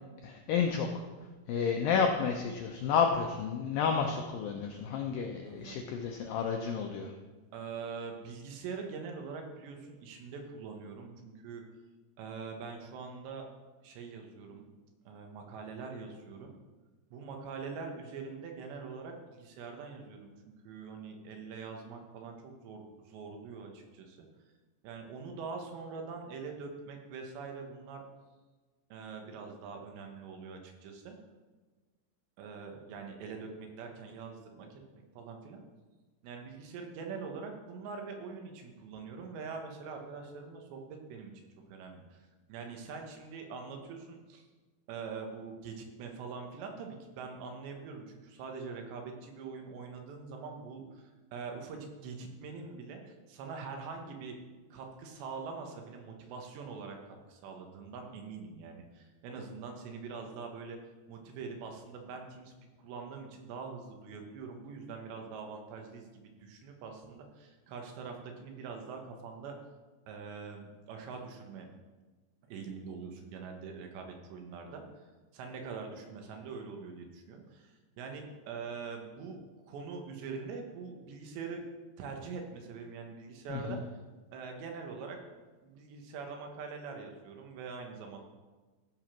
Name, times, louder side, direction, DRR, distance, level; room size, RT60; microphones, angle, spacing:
voice 1, 0.2-1.0 1.5-7.1 83.5-83.8, left 6 dB, 85° left, 3 dB, 2.0 m, -31 dB
voice 2, 5.4-5.9 7.5-11.6 12.2-13.5 13.8-14.6 15.1-16.5 17.1-20.3 20.6-24.3 24.8-28.0 28.9-31.2 32.4-35.6 36.2-41.3 41.7-44.5 44.9-54.4 54.7-60.8 61.1-69.5 70.1-71.7 72.5-79.4 79.6-81.6 82.0-83.8 84.3-85.2 85.6-88.2, right 5 dB, 85° right, 3 dB, 3.5 m, -44 dB
15.0 x 5.1 x 5.9 m, 1.3 s
omnidirectional pair, 4.9 m